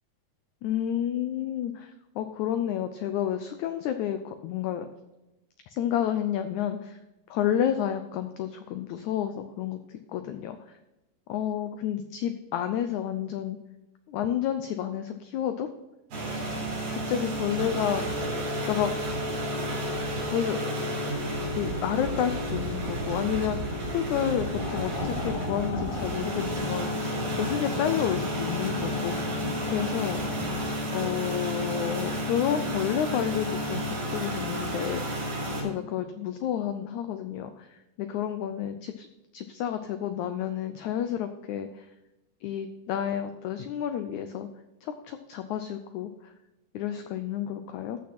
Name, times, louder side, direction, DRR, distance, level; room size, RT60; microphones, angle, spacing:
voice 1, 0.6-4.9 5.7-7.0 7.3-10.6 11.3-13.6 14.1-15.7 16.9-18.0 18.6-18.9 20.3-20.6 21.5-27.1 27.3-29.1 29.7-30.2 30.9-35.3 35.6-39.1 39.3-41.9 42.4-44.5 44.8-46.3 46.7-48.0, left 10 dB, 85° left, 9 dB, 1.6 m, -30 dB
sound 1, 16.1-35.6, equal, 85° right, 5.3 m, -31 dB
sound 2, 24.6-30.7, left 3 dB, 55° left, 2.4 m, -36 dB
14.5 x 6.0 x 4.3 m, 1.0 s
omnidirectional pair, 4.1 m